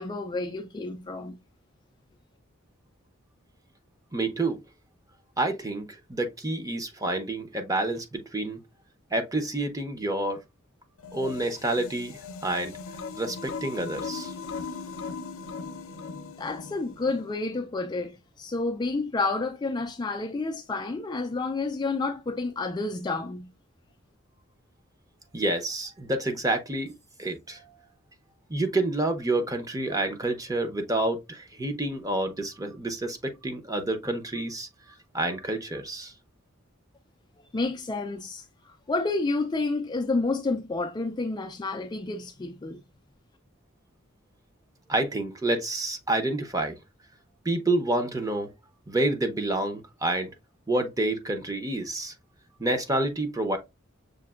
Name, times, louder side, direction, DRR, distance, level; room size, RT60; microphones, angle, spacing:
voice 1, 0.0-1.4 16.4-23.5 37.4-42.8, left 3 dB, 20° left, 0.3 m, -30 dB
voice 2, 4.1-4.6 5.4-8.6 9.1-10.4 11.1-12.8 13.1-14.3 25.3-27.8 28.5-34.7 35.1-36.1 44.9-46.8 47.4-48.5 48.9-50.3 50.7-52.1 52.6-53.6, right 2 dB, 15° right, 0.7 m, -28 dB
sound 1, 11.0-17.3, left 5 dB, 80° left, 0.6 m, -38 dB
6.5 x 2.6 x 2.4 m
head